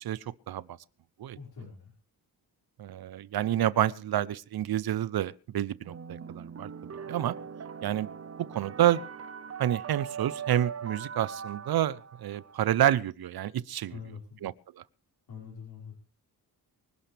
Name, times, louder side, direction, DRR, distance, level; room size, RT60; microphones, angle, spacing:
voice 1, 0.0-0.8 1.2-1.4 2.8-6.7 7.1-7.4 7.8-8.1 8.5-9.0 9.6-13.9 14.4-14.8, right 12 dB, 70° right, 0.8 m, -29 dB
voice 2, 1.3-1.9 13.9-14.4 15.3-15.9, left 6 dB, 70° left, 5.8 m, -44 dB
sound 1, 5.9-12.9, right 7 dB, 40° right, 0.8 m, -41 dB
24.5 x 12.0 x 3.5 m
wide cardioid pair, 145°, 39 cm